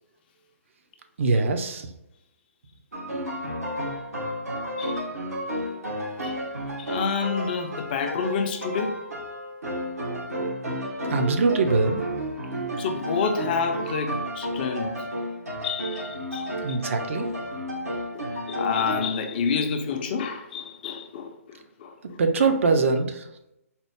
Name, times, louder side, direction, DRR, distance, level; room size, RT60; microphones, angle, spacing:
voice 1, 1.2-1.9 11.1-12.1 16.6-17.3 22.0-23.3, right 4 dB, 55° right, 0.5 m, -23 dB
sound 1, 2.9-19.0, equal, 85° right, 1.1 m, -32 dB
voice 2, 6.8-9.0 12.8-15.1 15.6-16.8 18.1-22.5, left 5 dB, 40° left, 0.5 m, -29 dB
4.3 x 2.0 x 3.4 m
figure-of-eight pair, 135°, 8 cm